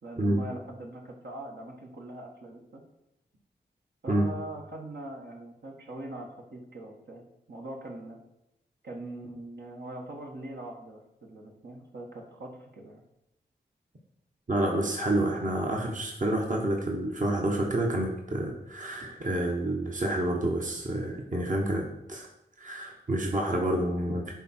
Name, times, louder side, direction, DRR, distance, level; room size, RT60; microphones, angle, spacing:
voice 1, 0.0-2.8 4.0-8.2 8.8-13.0, right 1 dB, 65° right, -1 dB, 1.5 m, -42 dB
voice 2, 14.5-22.3 22.6-24.3, right 1 dB, 45° right, 0 dB, 1.3 m, -28 dB
10.0 x 3.7 x 4.5 m, 0.87 s
cardioid pair, 50°, 19 cm